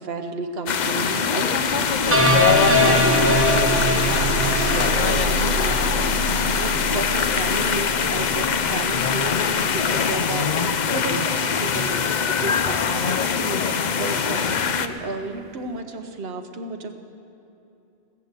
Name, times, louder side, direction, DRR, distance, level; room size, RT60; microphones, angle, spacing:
voice 1, 0.0-2.2 2.6-16.9, right 3 dB, 65° right, 5 dB, 1.2 m, -33 dB
sound 1, 0.7-14.9, left 6 dB, 50° left, 0.6 m, -23 dB
sound 2, 0.9-1.0 1.4-12.4 13.2-13.3 13.8-13.9, right 3 dB, 90° right, 1.0 m, -29 dB
sound 3, 2.1-5.4, left 2 dB, 15° right, 0.8 m, -21 dB
18.0 x 6.9 x 8.2 m, 2.9 s
omnidirectional pair, 1.1 m